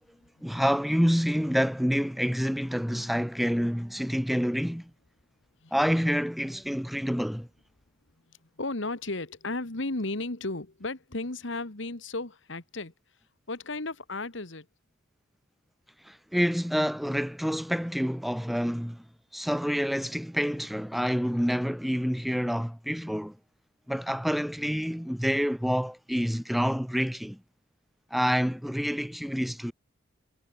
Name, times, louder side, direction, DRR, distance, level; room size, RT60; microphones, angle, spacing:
voice 1, 0.4-4.9 5.7-7.5 16.0-19.0 19.3-23.3 23.9-27.4 28.1-29.7, equal, ahead, 0.5 m, -27 dB
voice 2, 8.3-12.9 13.5-14.7, left 2 dB, 70° left, 1.9 m, -34 dB
head